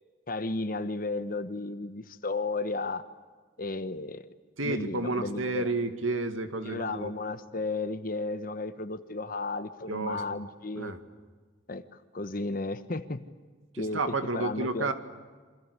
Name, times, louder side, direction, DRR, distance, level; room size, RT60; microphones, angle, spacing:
voice 1, 0.3-3.1 3.6-4.3 4.6-5.7 6.6-10.9 11.7-11.8 12.1-13.3 13.8-14.9, left 3 dB, 45° left, 10 dB, 1.1 m, -34 dB
voice 2, 4.6-7.1 9.9-10.2 10.8-11.0 13.7-14.9, right 2 dB, 90° right, 8 dB, 2.2 m, -31 dB
28.5 x 25.0 x 8.2 m, 1.5 s
head